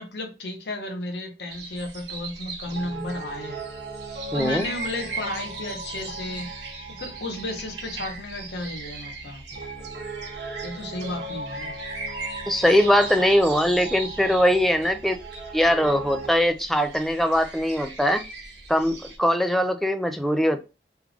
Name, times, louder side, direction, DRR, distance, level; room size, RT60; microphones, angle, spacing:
voice 1, 0.0-3.7 4.3-6.5 6.9-9.4 10.6-11.7, left 2 dB, 80° left, 1.0 m, -33 dB
sound 1, 1.5-19.2, right 3 dB, 80° right, 1.1 m, -39 dB
Piano, 2.6-16.4, right 3 dB, 60° right, 1.5 m, -39 dB
voice 2, 4.3-4.6 12.5-15.2 15.5-18.2 18.7-20.6, equal, ahead, 0.4 m, -21 dB
3.4 x 3.3 x 2.3 m
head